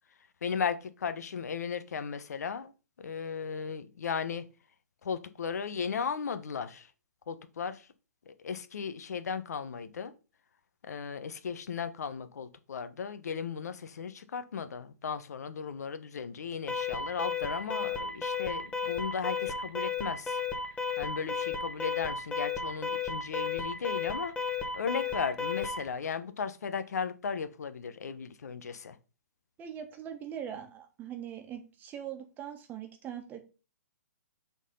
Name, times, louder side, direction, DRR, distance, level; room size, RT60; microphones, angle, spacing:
voice 1, 0.4-2.7 3.0-4.4 5.0-6.9 7.3-7.8 8.3-10.1 10.9-20.4 21.0-24.3 24.7-28.9, left 6 dB, 70° left, 11 dB, 1.0 m, -36 dB
Alarm, 16.7-25.9, left 5 dB, 10° left, 1.1 m, -33 dB
voice 2, 29.6-33.4, right 9 dB, 20° right, 5 dB, 1.3 m, -41 dB
6.2 x 4.0 x 5.4 m, 0.33 s
hypercardioid pair, 135°, 9 cm